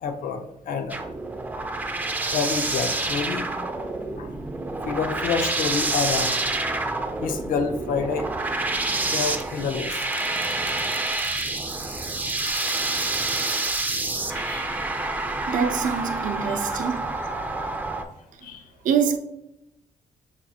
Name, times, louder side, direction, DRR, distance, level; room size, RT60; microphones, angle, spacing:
voice 1, 0.0-1.0 1.5-1.6 2.3-3.5 4.2-4.3 4.9-6.4 7.2-8.3 9.1-10.0 14.3-14.7 16.5-16.6 18.4-18.6, left 5 dB, 80° left, 0.5 m, -28 dB
sound 1, 0.9-18.0, right 2 dB, 10° right, 0.3 m, -28 dB
voice 2, 15.5-17.2 18.8-19.2, right 7 dB, 70° right, 0.5 m, -25 dB
5.9 x 2.4 x 2.7 m
cardioid pair, 135°, 14 cm